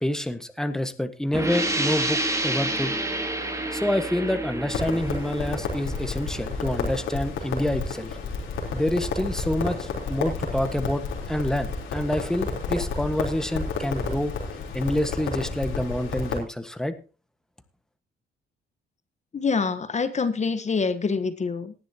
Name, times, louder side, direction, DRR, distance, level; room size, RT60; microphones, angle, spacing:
voice 1, 0.0-2.9 3.7-8.2 8.7-11.0 11.3-14.3 14.7-16.9, left 1 dB, 5° left, 9 dB, 1.5 m, -27 dB
sound 1, 1.3-6.8, right 1 dB, 15° right, 2.4 m, -29 dB
Crackle, 4.7-16.4, left 4 dB, 90° left, 3.7 m, -31 dB
voice 2, 19.3-21.7, left 5 dB, 35° left, 11 dB, 1.2 m, -26 dB
19.0 x 10.5 x 2.9 m, 0.34 s
cardioid pair, 90°, 20 cm